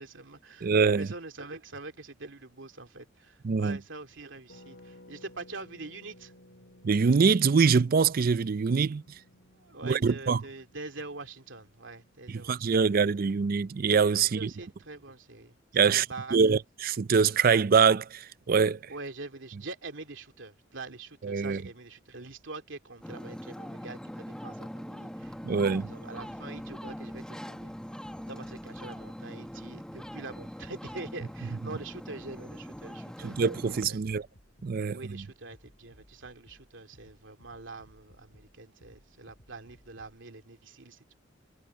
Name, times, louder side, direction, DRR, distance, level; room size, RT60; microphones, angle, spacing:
voice 1, 0.0-6.3 9.6-12.7 13.2-13.3 14.3-15.6 15.8-16.4 18.9-27.7 28.3-34.2 34.9-41.1, right 3 dB, 75° right, 2.7 m, -44 dB
voice 2, 0.6-1.1 3.4-3.8 6.8-9.0 9.8-10.4 12.4-14.5 15.7-16.0 16.3-18.8 21.2-21.6 25.4-25.9 33.2-34.2 34.6-35.0, right 5 dB, 50° right, 0.4 m, -24 dB
Harp, 4.5-14.1 14.4-14.5 14.6-14.9, left 1 dB, 75° left, 2.9 m, -57 dB
Ocean, 23.0-33.8, equal, 5° left, 1.2 m, -42 dB
sound 1, 35.1-40.2, equal, 55° left, 7.4 m, -60 dB
head